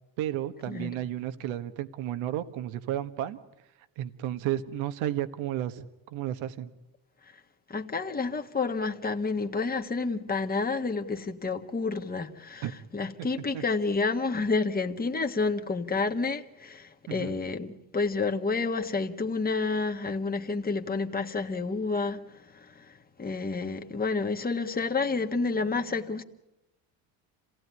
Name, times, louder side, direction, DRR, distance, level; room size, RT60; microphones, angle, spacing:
voice 1, 0.2-3.4 4.0-5.8 6.1-6.7 12.6-12.7 13.2-13.3 13.5-13.6 17.1-17.4, right 12 dB, 75° right, 1.5 m, -32 dB
voice 2, 7.7-26.2, left 4 dB, 20° left, 1.7 m, -30 dB
27.0 x 17.0 x 9.7 m
supercardioid pair, 85°, 47 cm